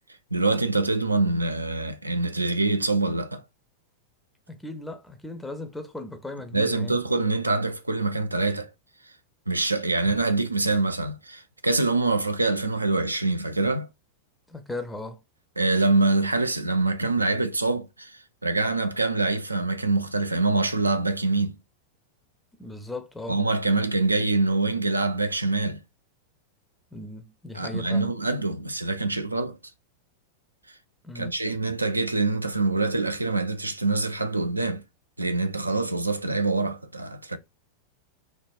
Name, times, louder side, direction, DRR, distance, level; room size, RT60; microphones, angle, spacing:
voice 1, 0.3-3.4 6.5-8.7 9.5-13.9 15.6-21.6 23.3-25.8 27.5-29.6 31.1-34.8 35.2-37.4, right 3 dB, 80° right, 0.3 m, -25 dB
voice 2, 4.5-7.0 14.5-15.2 22.6-23.4 26.9-28.1 31.0-31.3, left 2 dB, 5° left, 0.4 m, -37 dB
3.4 x 2.1 x 2.3 m
figure-of-eight pair, 90°, 0 cm